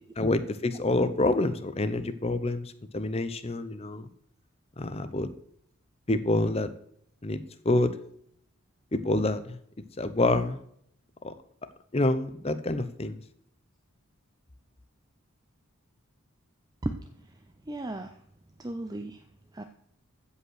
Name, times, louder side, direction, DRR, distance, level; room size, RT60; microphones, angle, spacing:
voice 1, 0.2-4.1 4.8-5.3 6.1-6.7 7.2-7.9 8.9-9.6 10.0-10.6 11.2-11.3 11.9-13.2, left 2 dB, 25° left, 12 dB, 0.7 m, -27 dB
voice 2, 17.7-18.1 18.6-19.2 19.5-19.6, right 1 dB, 15° right, 7 dB, 0.5 m, -34 dB
15.5 x 5.6 x 6.4 m, 0.69 s
head